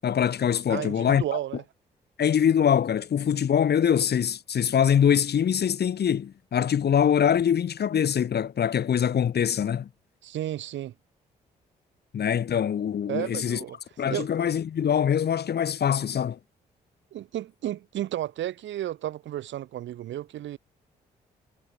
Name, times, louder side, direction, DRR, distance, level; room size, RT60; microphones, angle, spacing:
voice 1, 0.0-1.2 2.2-9.9 12.1-13.6 14.0-16.4, left 8 dB, 55° left, 1.6 m, -23 dB
voice 2, 0.7-1.6 10.2-10.9 13.1-13.8 14.1-14.3 17.1-20.6, right 12 dB, 70° right, 2.0 m, -32 dB
hypercardioid pair, 40°, 20 cm